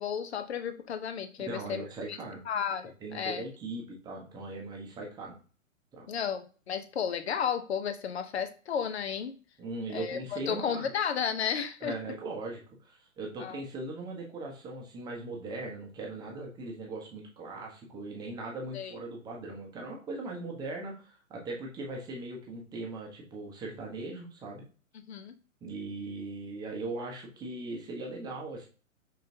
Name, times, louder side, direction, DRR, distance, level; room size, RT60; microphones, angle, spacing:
voice 1, 0.0-2.2 2.5-3.4 6.1-9.3 9.9-12.0 13.4-13.6 18.7-19.0 24.9-25.3, left 7 dB, 50° left, 9 dB, 0.8 m, -33 dB
voice 2, 1.4-2.4 3.0-5.3 5.9-6.1 9.6-10.9 11.8-24.6 25.6-28.7, right 2 dB, 10° right, -1 dB, 0.9 m, -39 dB
5.2 x 3.8 x 2.7 m, 0.37 s
figure-of-eight pair, 120°, 41 cm